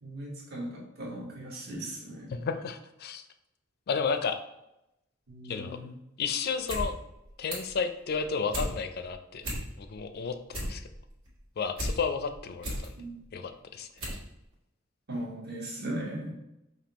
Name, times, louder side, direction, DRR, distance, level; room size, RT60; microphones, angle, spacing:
voice 1, 0.0-2.5 5.3-5.9 13.0-13.4 15.1-16.3, right 1 dB, 55° right, -3 dB, 1.2 m, -38 dB
voice 2, 2.3-3.3 3.9-4.4 5.5-5.8 6.2-7.0 7.4-9.5 9.8-10.8 11.6-12.7 13.3-13.9, left 5 dB, 50° left, 9 dB, 0.4 m, -32 dB
sound 1, 6.5-6.9 7.2-7.8 8.2-8.7 9.1-9.2 9.4-10.0 10.3-11.9 12.3-12.9 13.4-13.5 14.0-14.2 14.5-14.6, equal, 80° right, 1.5 m, -34 dB
5.2 x 2.7 x 2.9 m, 0.87 s
head